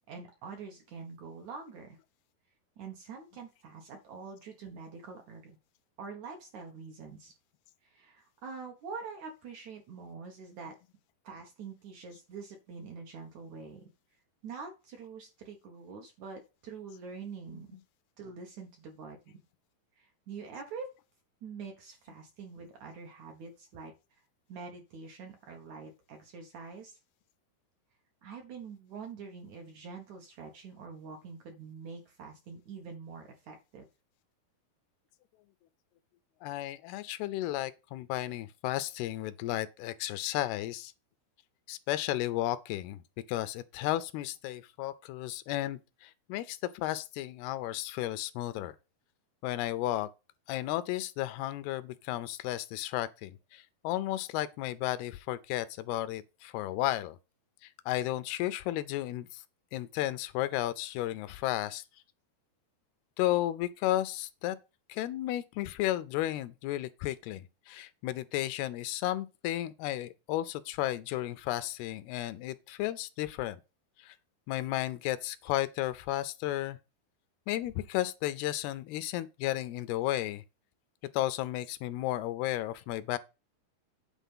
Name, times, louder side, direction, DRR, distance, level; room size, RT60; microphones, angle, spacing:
voice 1, 0.1-2.0 2.8-5.6 6.0-7.3 7.8-10.8 11.2-13.9 14.4-17.8 18.2-19.4 20.0-20.9 21.4-23.9 24.5-27.0 28.2-33.9, right 5 dB, 60° right, 2.1 m, -45 dB
voice 2, 36.4-40.9 41.7-43.0 43.3-48.8 49.4-50.1 50.5-57.2 57.6-59.4 59.7-61.8 63.2-64.6 64.9-73.6 74.0-74.2 74.5-76.8 77.5-80.4 81.1-83.2, left 15 dB, 80° left, 2.5 m, -33 dB
9.2 x 4.1 x 5.5 m
omnidirectional pair, 4.6 m